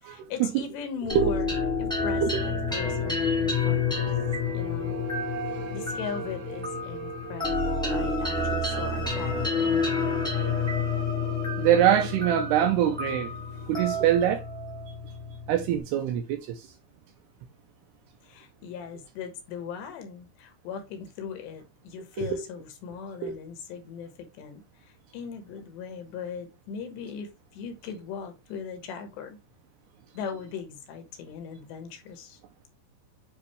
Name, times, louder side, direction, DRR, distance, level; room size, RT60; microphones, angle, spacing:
voice 1, 0.1-1.5 1.8-4.2 4.5-5.0 5.7-10.2 18.2-29.4 30.1-32.4, left 6 dB, 75° left, 3.2 m, -39 dB
sound 1, 1.1-15.8, left 4 dB, 5° left, 0.4 m, -29 dB
sound 2, 3.3-10.3, right 8 dB, 50° right, 2.6 m, -42 dB
voice 2, 11.6-13.3 13.7-14.4 15.5-16.2 22.2-22.4 23.2-23.4, right 10 dB, 80° right, 2.4 m, -23 dB
9.5 x 3.6 x 3.2 m
omnidirectional pair, 5.3 m